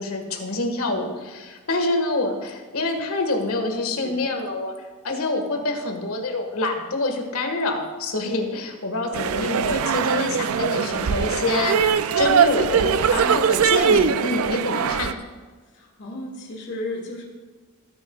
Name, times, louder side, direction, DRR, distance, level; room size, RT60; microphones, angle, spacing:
voice 1, 0.0-4.7 5.0-11.8 12.1-15.1, left 2 dB, 85° left, 4 dB, 1.7 m, -26 dB
voice 2, 3.7-4.2 14.7-15.1 15.7-17.2, left 1 dB, 55° left, -2 dB, 2.1 m, -35 dB
sound 1, 9.1-15.1, right 7 dB, 90° right, 0.4 m, -21 dB
18.5 x 9.6 x 2.4 m, 1.4 s
head